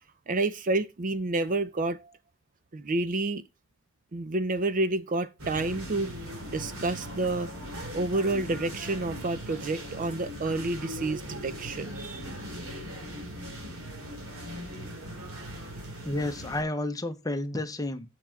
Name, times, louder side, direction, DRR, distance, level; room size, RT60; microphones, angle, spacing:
voice 1, 0.3-2.1 2.7-3.4 4.1-6.1 6.5-7.5 7.9-12.2, right 2 dB, 40° right, 0.5 m, -29 dB
sound 1, 5.4-16.6, equal, 85° right, 3.1 m, -39 dB
voice 2, 16.0-18.1, left 1 dB, 15° left, 0.9 m, -31 dB
7.6 x 5.8 x 4.5 m
head